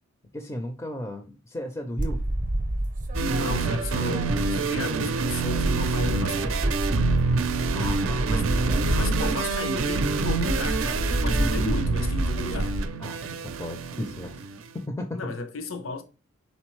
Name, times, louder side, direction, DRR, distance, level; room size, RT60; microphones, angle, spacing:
voice 1, 0.3-2.2 7.7-8.2 8.5-8.9 13.0-14.4 14.7-15.4, left 1 dB, 15° left, 0.4 m, -35 dB
sound 1, 2.0-4.8 5.1-12.9, right 1 dB, 40° right, 0.6 m, -28 dB
sound 2, 3.1-14.7, right 4 dB, 80° right, 0.5 m, -27 dB
voice 2, 3.2-6.7 8.3-8.5 8.9-12.8 15.1-16.0, left 3 dB, 80° left, 0.7 m, -34 dB
4.3 x 3.7 x 3.1 m
head